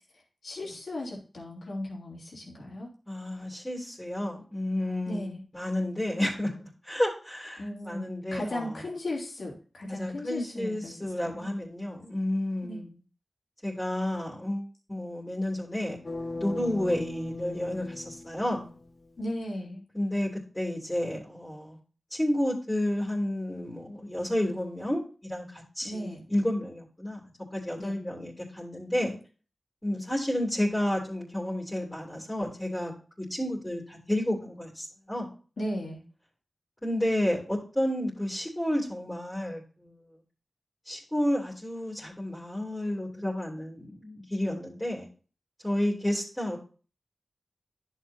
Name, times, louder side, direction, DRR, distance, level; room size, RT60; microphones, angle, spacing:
voice 1, 0.4-2.9 5.0-5.4 7.6-11.0 11.2-11.5 12.6-12.8 19.2-19.8 25.8-26.2 27.8-28.0 35.6-36.0, left 1 dB, 80° left, -1 dB, 3.2 m, -36 dB
voice 2, 3.1-8.8 9.9-12.9 13.6-16.0 16.3-18.7 19.9-21.8 22.1-29.2 29.8-35.3 36.8-39.9 40.8-45.1 45.6-46.6, left 1 dB, 15° left, -3 dB, 2.8 m, -31 dB
sound 1, 16.0-19.1, left 2 dB, 55° left, 1.3 m, -38 dB
11.0 x 6.6 x 2.7 m, 0.37 s
cardioid pair, 45°, 0 cm